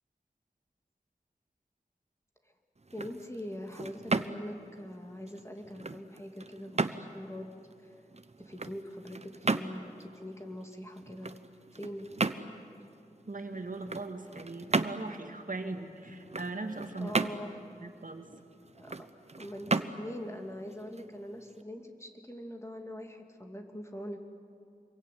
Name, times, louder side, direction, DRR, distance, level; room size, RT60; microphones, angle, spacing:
sound 1, 2.8-21.6, right 3 dB, 45° right, 1.0 m, -36 dB
voice 1, 2.9-7.5 7.8-7.9 8.4-11.3 11.7-12.4 17.0-17.6 18.8-19.1 19.4-24.2, equal, 20° left, 3 dB, 2.7 m, -43 dB
voice 2, 13.3-17.1 17.8-18.3, right 3 dB, 65° right, 5 dB, 2.2 m, -39 dB
27.0 x 23.0 x 9.5 m, 2.7 s
wide cardioid pair, 65°, 15 cm